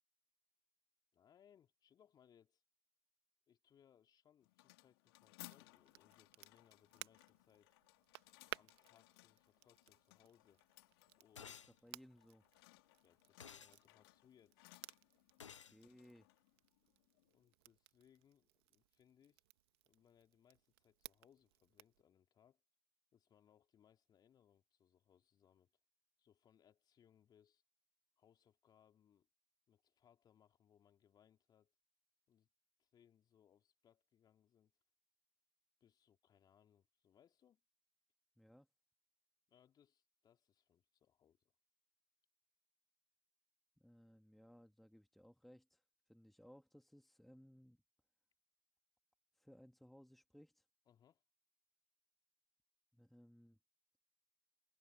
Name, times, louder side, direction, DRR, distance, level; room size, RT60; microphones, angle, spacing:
voice 1, 1.1-2.6 3.5-7.8 8.5-10.6 11.2-11.6 13.0-14.7 17.3-19.4 19.8-22.6 23.1-25.7 26.2-27.6 28.2-29.3 29.7-31.7 32.3-32.5 32.8-34.7 35.8-37.6 39.5-41.5 50.8-51.2, left 9 dB, 25° left, 3.4 m, -72 dB
sound 1, 4.4-17.5, left 22 dB, 55° left, 3.4 m, -64 dB
Crackle, 5.4-22.0, right 19 dB, 55° right, 1.5 m, -59 dB
sound 2, 11.4-11.7 13.4-13.8 15.4-15.8, left 7 dB, 85° left, 0.5 m, -54 dB
voice 2, 11.8-12.5 15.4-16.3 38.4-38.7 43.8-45.8 46.1-47.8 49.3-50.7 52.9-53.6, equal, ahead, 2.2 m, -63 dB
hypercardioid pair, 100°, 15 cm